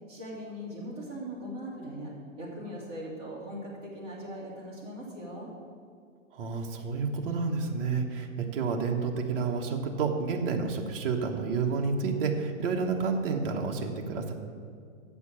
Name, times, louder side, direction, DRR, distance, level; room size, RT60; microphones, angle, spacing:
voice 1, 0.1-5.5, equal, 15° right, -7 dB, 2.4 m, -40 dB
voice 2, 6.3-14.3, right 4 dB, 45° right, 1 dB, 1.1 m, -30 dB
7.7 x 6.9 x 8.4 m, 2.3 s
hypercardioid pair, 165°, 40 cm